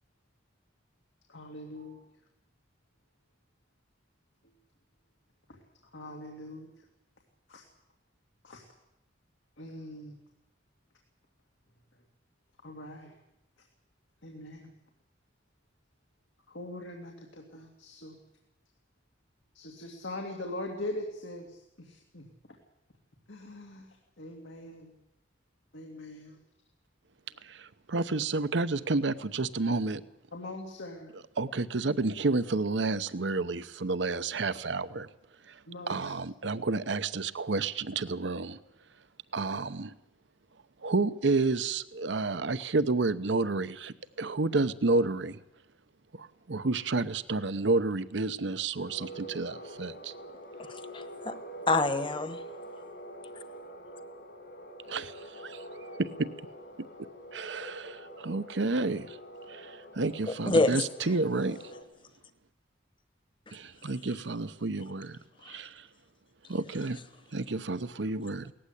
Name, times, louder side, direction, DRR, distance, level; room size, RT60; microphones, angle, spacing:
voice 1, 1.3-2.0 5.5-5.6 5.9-6.7 7.5-7.6 8.4-8.6 9.6-10.2 12.6-13.2 14.2-14.7 16.5-18.2 19.5-22.3 23.3-23.9 24.2-24.9 25.7-26.4 27.3-27.4 30.3-31.1 35.7-36.1, left 1 dB, 90° left, 2 dB, 2.6 m, -42 dB
voice 2, 27.4-30.0 31.4-35.1 35.5-35.6 35.9-38.6 39.3-39.9 40.8-45.4 46.1-50.1 54.9-55.6 56.0-56.3 57.3-59.2 59.5-61.6 63.5-65.9 66.5-67.0 67.3-68.5, right 3 dB, 75° right, 14 dB, 0.8 m, -30 dB
sound 1, 48.9-61.8, equal, 65° left, 3.5 m, -45 dB
voice 3, 50.6-51.4 51.7-52.4 60.3-61.1 63.5-63.6 65.4-65.6, left 2 dB, 25° left, 11 dB, 1.2 m, -28 dB
18.5 x 15.0 x 10.0 m, 0.86 s
head